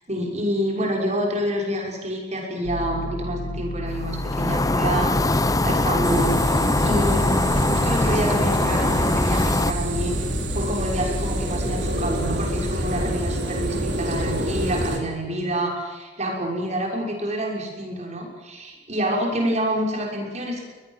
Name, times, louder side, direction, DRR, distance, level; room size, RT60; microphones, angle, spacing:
voice 1, 0.1-10.3 10.5-20.6, right 1 dB, 40° right, 1 dB, 6.3 m, -27 dB
sound 1, 2.6-13.2, left 2 dB, 65° left, 1.0 m, -32 dB
sound 2, 3.9-9.7, left 2 dB, 20° left, 0.8 m, -22 dB
sound 3, 6.0-15.0, right 1 dB, 80° right, 3.8 m, -27 dB
23.0 x 20.0 x 7.6 m, 1.3 s
head